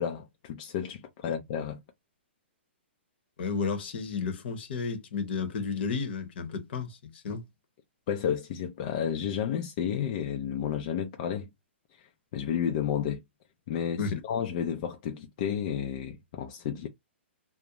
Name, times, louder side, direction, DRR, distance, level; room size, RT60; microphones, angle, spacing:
voice 1, 0.0-1.8 8.1-11.5 11.9-13.2 13.7-16.9, left 8 dB, 40° left, 0.4 m, -32 dB
voice 2, 3.4-7.4 14.0-14.2, left 5 dB, 55° left, 0.8 m, -32 dB
2.5 x 2.0 x 2.9 m
hypercardioid pair, 145°, 7 cm